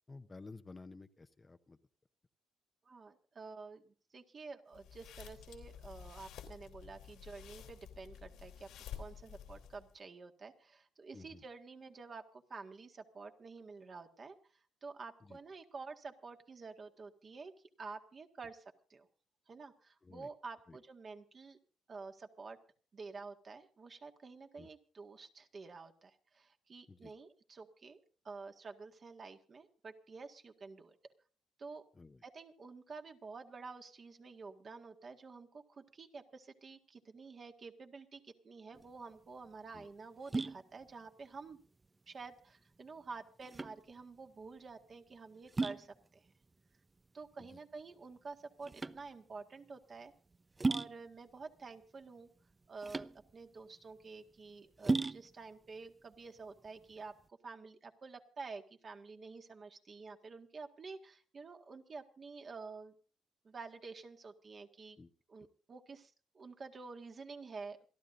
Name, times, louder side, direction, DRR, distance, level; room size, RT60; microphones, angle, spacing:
voice 1, 0.1-1.8 11.1-11.4 15.2-15.4 20.0-20.3 20.7-20.8 24.6-24.7 26.9-27.1 31.9-32.2 39.7-39.9 47.4-47.6 65.0-65.1, left 3 dB, 25° left, 9 dB, 0.8 m, -53 dB
voice 2, 2.9-8.7 9.0-17.5 17.8-18.6 18.9-19.1 19.5-21.6 21.9-22.6 22.9-31.0 31.6-31.8 32.2-41.6 42.1-46.3 47.1-50.1 50.7-52.3 52.7-62.9 63.4-65.0 65.3-67.8, right 4 dB, 40° right, 5 dB, 1.8 m, -50 dB
sound 1, 4.7-10.0, left 8 dB, 90° left, 3.1 m, -51 dB
sound 2, 38.7-57.3, right 3 dB, 25° right, 0.5 m, -40 dB
27.5 x 11.5 x 2.6 m, 0.39 s
cardioid pair, 90°, 0 cm